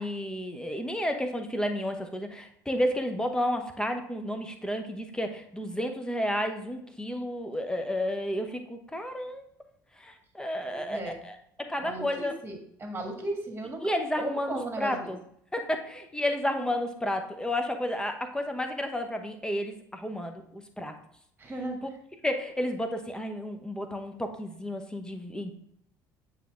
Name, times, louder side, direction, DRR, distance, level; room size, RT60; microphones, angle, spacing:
voice 1, 0.0-9.4 10.0-12.3 13.8-15.2 15.5-20.9 22.2-25.5, left 1 dB, 5° left, 5 dB, 0.9 m, -31 dB
voice 2, 10.6-11.2 11.8-15.1 21.4-21.8, right 1 dB, 20° right, 2 dB, 1.6 m, -36 dB
8.9 x 3.2 x 3.5 m, 0.70 s
figure-of-eight pair, 55°, 10 cm